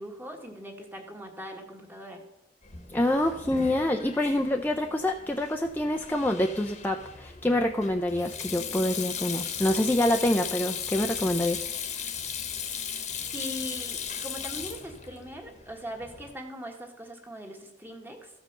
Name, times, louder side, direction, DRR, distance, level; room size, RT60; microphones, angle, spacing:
voice 1, 0.0-2.2 13.3-18.3, equal, 10° right, 2 dB, 1.5 m, -40 dB
Sink (filling or washing), 2.6-16.3, left 7 dB, 40° left, 1.1 m, -37 dB
voice 2, 2.9-11.6, left 1 dB, 10° left, 2 dB, 0.5 m, -26 dB
14.0 x 5.2 x 6.6 m, 0.95 s
head